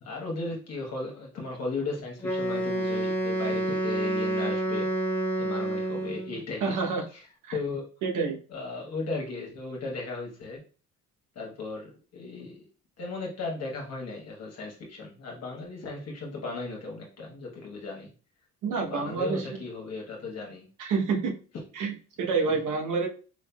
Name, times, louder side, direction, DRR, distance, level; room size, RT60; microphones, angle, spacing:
voice 1, 0.0-4.9 5.4-6.8 7.5-7.8 8.5-10.6 11.3-12.6 13.0-18.1 18.8-20.7, left 3 dB, 55° left, -1 dB, 1.2 m, -36 dB
Wind instrument woodwind instrument, 2.2-6.4, right 1 dB, 5° left, 1.1 m, -28 dB
voice 2, 6.6-7.0 7.4-7.6 8.0-8.4 18.6-19.6 20.8-21.3 21.7-23.1, right 4 dB, 80° right, 2 dB, 1.0 m, -28 dB
4.5 x 2.7 x 2.3 m, 0.36 s
cardioid pair, 90°, 30 cm